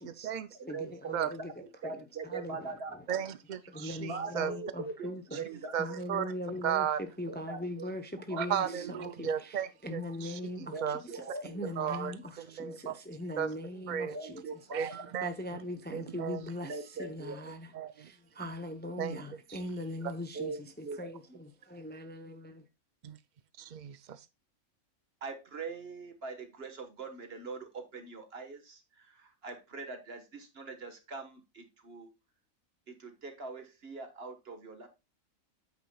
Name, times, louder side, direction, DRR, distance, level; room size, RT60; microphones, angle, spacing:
voice 1, 0.0-3.1 3.7-5.5 5.8-22.7, left 1 dB, 10° left, 0.6 m, -41 dB
voice 2, 0.6-1.2 1.8-2.9 4.1-6.0 7.3-7.9 8.3-8.9 10.7-11.6 14.1-14.9 16.6-17.4 20.3-21.0 25.2-32.1 32.9-34.9, right 4 dB, 45° right, 1.6 m, -42 dB
voice 3, 3.1-4.5 5.7-6.2 6.6-7.0 8.4-10.0 10.8-11.0 11.8-12.1 12.6-12.9 13.4-13.5 13.9-14.2 14.7-15.3 15.9-16.4 17.7-17.9 19.0-19.2 23.0-23.2 23.6-24.2, right 8 dB, 85° right, 0.4 m, -34 dB
9.1 x 8.6 x 2.3 m
omnidirectional pair, 1.5 m